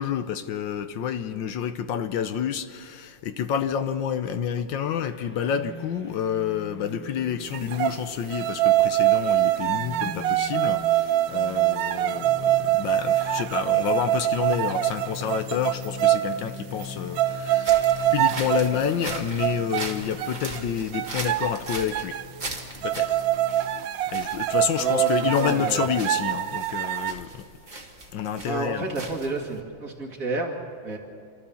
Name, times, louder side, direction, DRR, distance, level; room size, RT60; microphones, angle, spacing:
voice 1, 0.0-17.8 18.1-22.2 22.8-23.2 24.1-27.5 28.1-29.1, left 8 dB, 75° left, 1.5 m, -29 dB
sound 1, 5.0-23.9, left 3 dB, 10° left, 0.7 m, -42 dB
sound 2, 7.5-8.0 8.3-16.4 16.8-16.9 17.2-18.8 19.1-19.9 20.2-20.6 20.9-22.2 22.8-27.1, right 14 dB, 70° right, 0.8 m, -24 dB
sound 3, 17.6-29.6, right 2 dB, 25° right, 1.7 m, -39 dB
voice 2, 24.8-25.9 28.4-31.0, right 2 dB, 45° right, 2.5 m, -30 dB
28.5 x 13.0 x 7.1 m
omnidirectional pair, 2.1 m